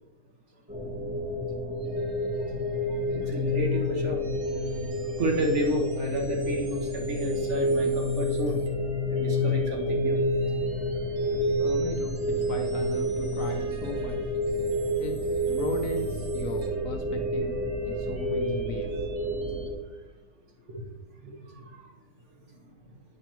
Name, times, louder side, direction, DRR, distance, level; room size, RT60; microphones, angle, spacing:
sound 1, 0.7-19.7, equal, 10° right, 1.4 m, -29 dB
sound 2, 1.8-19.7, right 1 dB, 80° right, 1.7 m, -50 dB
voice 1, 3.1-4.2 5.1-8.6 9.1-10.2 20.7-20.8 21.2-21.9, right 1 dB, 50° right, 0 dB, 1.3 m, -31 dB
voice 2, 11.3-14.2 15.0-15.2 15.5-19.0, left 3 dB, 60° left, 3 dB, 1.0 m, -36 dB
8.1 x 5.7 x 2.9 m, 1.1 s
omnidirectional pair, 1.8 m